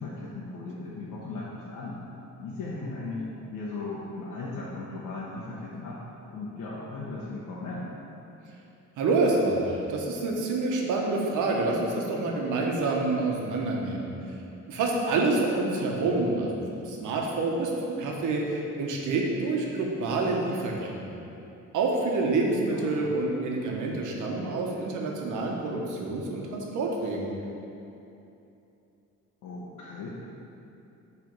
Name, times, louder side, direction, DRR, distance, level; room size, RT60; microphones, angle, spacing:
voice 1, 0.0-2.0 2.4-6.0 6.3-7.9 22.7-23.1 29.4-30.1, left 3 dB, 90° left, -7 dB, 1.0 m, -37 dB
voice 2, 9.0-14.1 14.7-21.2 21.7-27.3, right 3 dB, 85° right, -1 dB, 1.1 m, -27 dB
7.7 x 3.4 x 5.2 m, 2.8 s
cardioid pair, 90°, 30 cm